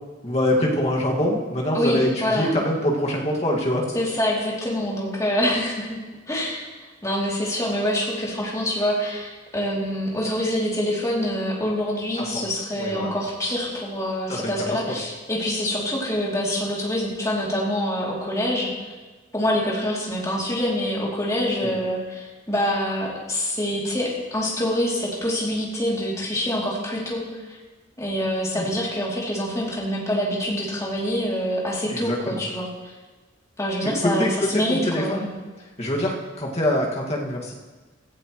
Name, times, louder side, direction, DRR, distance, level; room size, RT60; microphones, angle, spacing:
voice 1, 0.2-3.9 12.2-12.3 12.8-13.1 14.3-14.5 21.6-21.7 28.6-28.7 31.9-32.4 33.8-35.3 35.8-37.6, left 1 dB, 35° left, -2 dB, 2.0 m, -24 dB
voice 2, 1.7-2.5 3.9-6.0 6.3-6.7 7.0-18.7 19.3-27.6 28.0-32.7 33.6-35.3, equal, 15° left, -4 dB, 2.9 m, -25 dB
16.5 x 14.5 x 3.2 m, 1.3 s
head